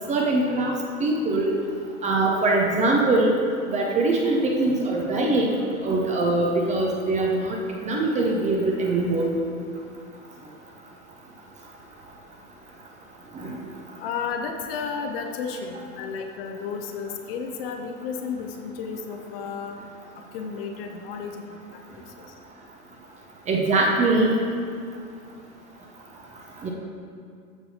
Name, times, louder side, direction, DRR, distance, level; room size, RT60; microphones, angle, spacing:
voice 1, 0.1-0.7 1.0-1.5 2.0-3.3 3.7-7.6 7.8-9.3 13.3-13.6 23.5-24.4 26.6-26.7, right 2 dB, 15° right, -1 dB, 0.7 m, -22 dB
voice 2, 14.0-19.8 20.3-22.2, left 5 dB, 40° left, 4 dB, 0.8 m, -33 dB
14.0 x 5.5 x 2.9 m, 2.3 s
figure-of-eight pair, 95°, 43 cm